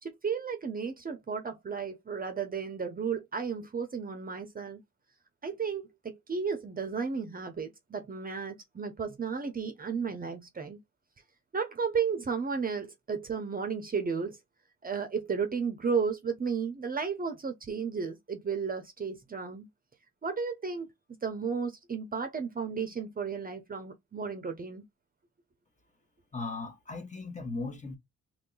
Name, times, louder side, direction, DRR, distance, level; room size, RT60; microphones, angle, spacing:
voice 1, 0.0-4.8 5.4-10.8 11.5-14.4 14.8-19.7 20.2-20.9 21.2-24.8, right 5 dB, 30° right, 0.8 m, -33 dB
voice 2, 26.3-28.0, left 3 dB, 25° left, 1.2 m, -37 dB
3.1 x 2.7 x 3.9 m
cardioid pair, 90°, 30 cm